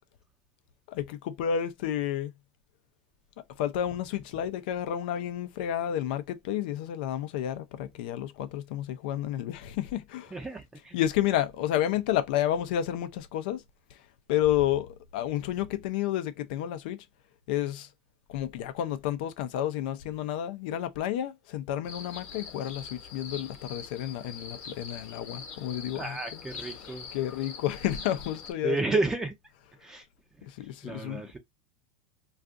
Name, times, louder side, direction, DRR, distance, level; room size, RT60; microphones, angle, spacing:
voice 1, 0.9-2.3 3.4-10.4 10.9-13.6 13.9-14.0 14.3-17.1 17.5-17.9 18.3-26.4 26.9-28.8 30.4-31.2, left 11 dB, 70° left, 0.5 m, -31 dB
voice 2, 10.3-11.0 25.9-27.1 28.6-29.3 29.8-30.1 30.4-30.5 30.8-31.4, right 3 dB, 10° right, 0.5 m, -31 dB
sound 1, 21.8-28.5, left 6 dB, 40° left, 1.0 m, -44 dB
2.5 x 2.4 x 3.6 m
supercardioid pair, 155°, 5 cm